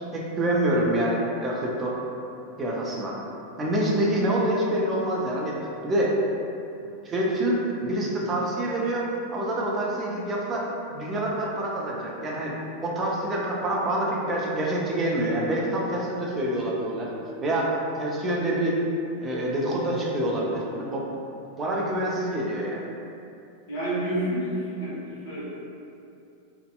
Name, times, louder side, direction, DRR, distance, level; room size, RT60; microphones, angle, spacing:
voice 1, 0.1-2.0 2.6-3.2 3.6-5.6 5.8-6.1 7.0-12.5 12.8-17.1 17.4-17.7 18.0-18.8 19.2-21.1 21.6-22.8, right 1 dB, 20° right, -3 dB, 0.4 m, -26 dB
voice 2, 23.7-24.9 25.2-25.4, right 1 dB, 50° left, -10 dB, 0.9 m, -28 dB
2.6 x 2.1 x 2.3 m, 2.6 s
figure-of-eight pair, 90°, 0 cm